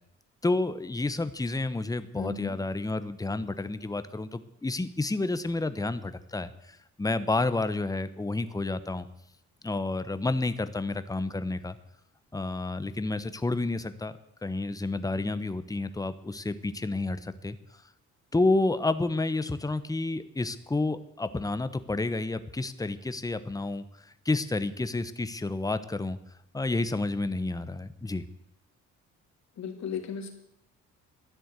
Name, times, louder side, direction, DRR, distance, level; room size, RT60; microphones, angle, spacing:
voice 1, 0.4-9.1 9.6-11.8 12.3-14.1 14.4-17.8 18.3-26.2 26.5-28.2, left 2 dB, 10° left, 12 dB, 1.0 m, -30 dB
voice 2, 2.1-2.5 29.6-30.3, left 6 dB, 65° left, 3 dB, 3.2 m, -35 dB
13.0 x 10.0 x 8.2 m, 0.78 s
cardioid pair, 90°, 30 cm